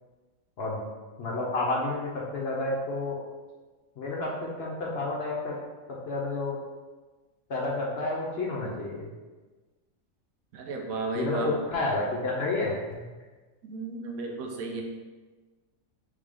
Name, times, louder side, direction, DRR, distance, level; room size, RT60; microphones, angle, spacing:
voice 1, 1.2-3.2 4.0-5.6 6.1-6.6 7.5-9.1 11.1-13.1, left 2 dB, 55° left, -2 dB, 0.8 m, -30 dB
voice 2, 10.5-11.6 13.6-14.8, right 3 dB, 80° right, 2 dB, 1.1 m, -33 dB
3.7 x 3.5 x 3.4 m, 1.3 s
omnidirectional pair, 1.5 m